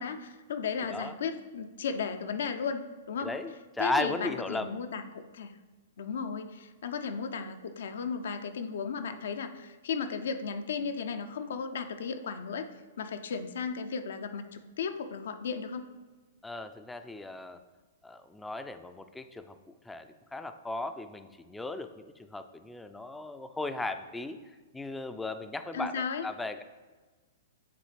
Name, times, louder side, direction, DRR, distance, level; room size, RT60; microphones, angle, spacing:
voice 1, 0.0-3.3 3.8-5.6 6.0-12.7 13.0-15.9 25.7-26.3, left 6 dB, 65° left, 9 dB, 0.5 m, -35 dB
voice 2, 3.2-3.5 3.8-4.7 16.4-17.6 18.0-19.5 19.9-24.4 24.7-26.6, left 2 dB, 5° left, 9 dB, 0.4 m, -36 dB
9.3 x 3.9 x 3.3 m, 1.3 s
figure-of-eight pair, 110°, 0 cm